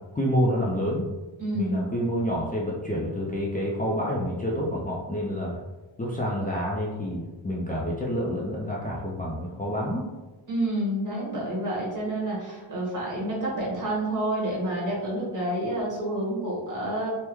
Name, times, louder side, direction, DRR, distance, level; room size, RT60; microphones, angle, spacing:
voice 1, 0.1-1.1 1.5-5.6 6.0-10.1, equal, 20° left, -5 dB, 0.4 m, -28 dB
voice 2, 1.4-1.9 10.5-17.1, right 1 dB, 40° right, -5 dB, 1.3 m, -29 dB
3.4 x 2.1 x 3.0 m, 1.2 s
wide cardioid pair, 95°, 47 cm